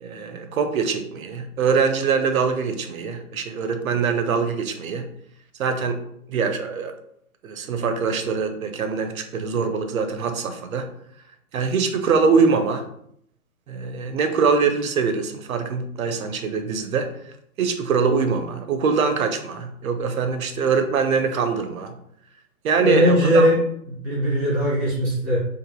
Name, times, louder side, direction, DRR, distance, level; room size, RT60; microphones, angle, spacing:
voice 1, 0.0-5.1 5.6-6.0 6.3-6.9 7.4-10.9 11.5-12.9 13.7-17.1 17.6-22.0 22.6-23.5, right 5 dB, 70° right, 7 dB, 0.6 m, -23 dB
voice 2, 22.8-23.6 24.0-25.4, left 1 dB, 5° left, -12 dB, 0.3 m, -19 dB
2.9 x 2.5 x 2.2 m, 0.72 s
figure-of-eight pair, 125°, 43 cm